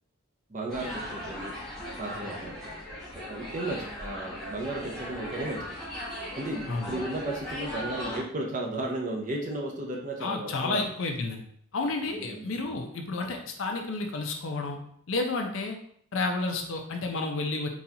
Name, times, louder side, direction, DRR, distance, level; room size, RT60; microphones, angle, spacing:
voice 1, 0.5-1.5 2.0-2.6 3.3-5.7 6.4-10.8 12.1-12.8, right 2 dB, 35° right, 0 dB, 0.5 m, -34 dB
sound 1, 0.7-8.2, left 1 dB, ahead, 0.9 m, -38 dB
voice 2, 10.2-11.4 11.7-14.8 15.1-15.8 16.1-17.7, left 3 dB, 60° left, 3 dB, 0.5 m, -31 dB
4.0 x 2.4 x 2.8 m, 0.66 s
head